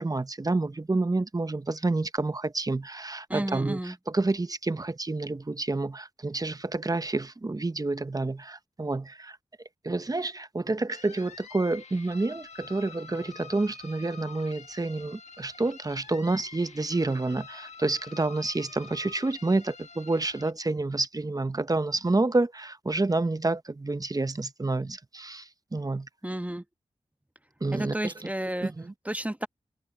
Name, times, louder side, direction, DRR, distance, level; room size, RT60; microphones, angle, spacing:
voice 1, 0.0-9.4 9.8-26.1 27.6-28.3 28.6-28.9, right 2 dB, 30° right, 1.0 m, -29 dB
voice 2, 3.3-3.9 26.2-26.6 27.7-28.7 29.0-29.5, right 1 dB, 10° right, 1.3 m, -32 dB
sound 1, 10.9-20.5, left 5 dB, 70° left, 1.4 m, -47 dB
cardioid pair, 45°, 12 cm